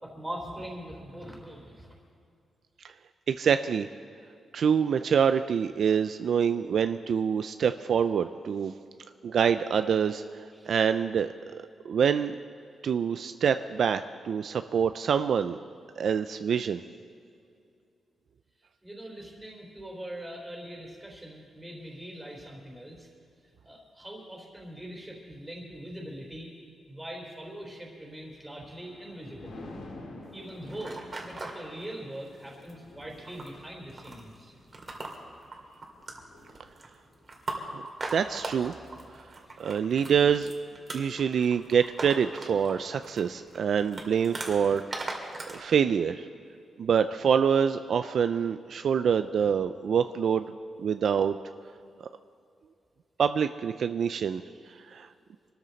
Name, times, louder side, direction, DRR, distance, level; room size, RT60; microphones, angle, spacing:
voice 1, 0.0-1.9 10.5-10.7 18.8-23.1 23.7-26.5 26.9-29.6 30.3-34.5 39.5-39.6, right 1 dB, 10° right, -1 dB, 3.5 m, -42 dB
voice 2, 3.3-3.9 4.5-8.7 9.2-12.4 12.8-15.6 16.0-16.8 37.6-37.8 38.1-38.7 39.6-40.5 40.9-45.1 45.5-46.3 46.8-51.4 53.2-54.4 54.9-55.1, right 7 dB, 60° right, 10 dB, 0.4 m, -26 dB
Thunder, 28.2-39.7 40.2-40.5, left 2 dB, 85° left, 2.5 m, -50 dB
sound 1, 30.2-31.6 32.2-32.7 33.0-45.6, right 2 dB, 30° right, 2.2 m, -40 dB
25.0 x 13.5 x 4.0 m, 2.4 s
wide cardioid pair, 140°, 0 cm